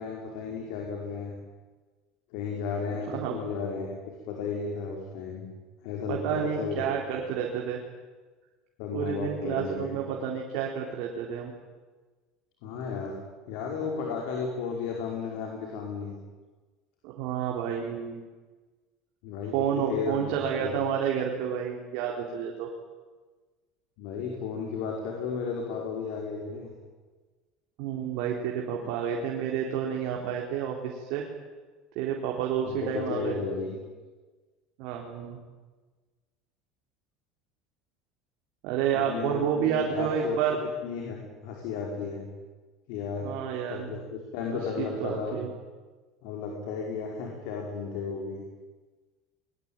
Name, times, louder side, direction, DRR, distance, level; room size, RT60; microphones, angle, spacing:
voice 1, 0.0-1.3 2.3-4.0 4.2-5.5 5.8-6.9 8.8-10.0 12.6-13.2 13.5-16.2 19.2-20.2 20.6-20.7 24.0-26.7 32.6-33.8 38.9-40.4 40.8-42.3 42.9-43.3 43.7-44.0 44.3-45.4 46.2-48.4, left 5 dB, 65° left, 0 dB, 5.4 m, -34 dB
voice 2, 6.1-7.8 8.9-11.5 17.0-18.2 19.5-22.7 27.8-31.2 32.0-33.4 34.8-35.4 38.6-40.6 43.2-44.0 44.8-45.5, right 8 dB, 60° right, 0 dB, 3.9 m, -30 dB
23.0 x 21.5 x 9.0 m, 1.3 s
cardioid pair, 165°, 0 cm